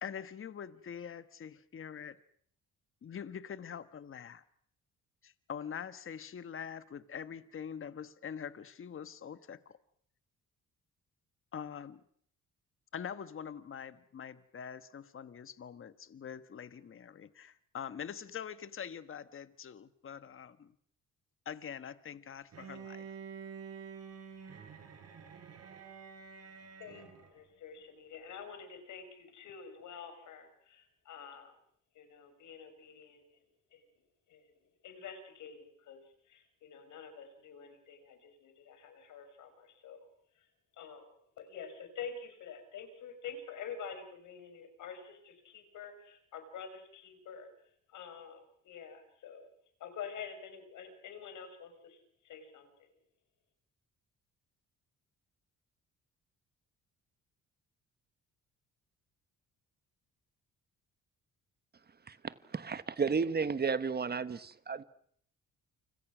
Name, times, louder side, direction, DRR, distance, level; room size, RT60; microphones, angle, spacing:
voice 1, 0.0-2.2 3.0-4.4 5.2-9.8 11.5-12.0 12.9-20.7 21.4-23.1, left 8 dB, 45° left, 1.3 m, -44 dB
Bowed string instrument, 22.5-27.4, right 6 dB, 55° right, 5.2 m, -48 dB
voice 2, 26.8-31.5 31.9-33.4 33.7-33.9 34.3-34.5 34.8-36.0 36.3-40.1 40.4-40.5 40.8-47.5 47.9-49.5 49.8-53.0, left 6 dB, 80° left, 5.9 m, -48 dB
voice 3, 62.1-64.8, right 5 dB, 35° right, 1.3 m, -33 dB
29.5 x 25.5 x 6.2 m
cardioid pair, 90°, 30 cm